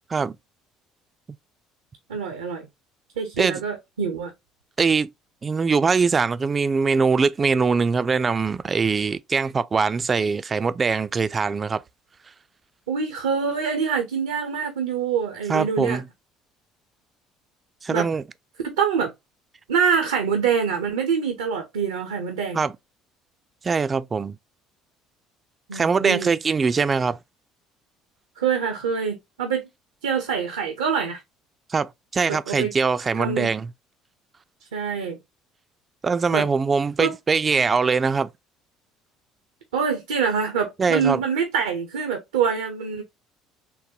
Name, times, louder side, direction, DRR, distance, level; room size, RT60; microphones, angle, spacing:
voice 1, 2.1-2.6 3.2-4.3 12.9-16.0 17.9-18.1 18.6-19.1 19.7-22.6 25.7-26.3 28.4-29.7 30.0-31.2 32.3-32.7 33.1-33.5 34.7-35.2 36.3-36.5 37.0-37.1 39.7-43.0, right 6 dB, 80° right, 0.5 m, -25 dB
voice 2, 4.8-5.1 5.4-11.8 15.5-16.1 17.8-18.2 22.5-22.7 23.6-24.4 25.7-27.2 31.7-33.7 36.0-38.3 40.8-41.2, right 5 dB, 30° right, 0.3 m, -22 dB
3.8 x 2.1 x 2.6 m
hypercardioid pair, 60°, 0 cm